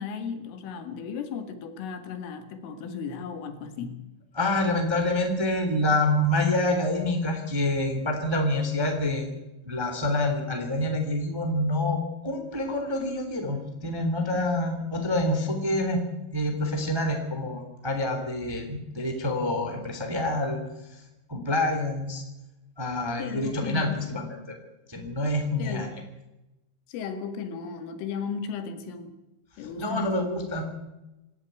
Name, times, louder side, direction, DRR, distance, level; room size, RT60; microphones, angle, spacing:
voice 1, 0.0-4.0 14.3-14.6 23.2-24.1 25.6-26.0 26.9-29.1 29.6-30.2, left 6 dB, 80° left, 7 dB, 4.4 m, -35 dB
voice 2, 4.3-9.3 9.6-16.0 16.3-20.6 21.3-22.2 22.8-24.5 24.9-25.9 29.8-30.6, left 1 dB, 10° right, 4 dB, 2.0 m, -27 dB
26.5 x 11.0 x 9.3 m, 0.97 s
omnidirectional pair, 5.6 m